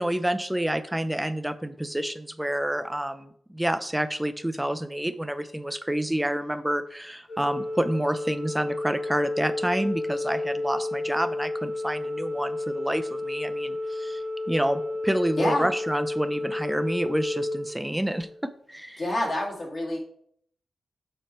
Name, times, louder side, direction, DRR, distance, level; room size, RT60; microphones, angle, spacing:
voice 1, 0.0-14.2 14.5-19.0, right 1 dB, 5° right, 10 dB, 0.6 m, -28 dB
Organ, 7.3-18.4, left 2 dB, 65° left, 1.6 m, -31 dB
voice 2, 15.4-15.7 19.0-20.0, left 1 dB, 45° left, -2 dB, 2.1 m, -27 dB
7.2 x 4.3 x 4.4 m, 0.64 s
cardioid pair, 70°, 0 cm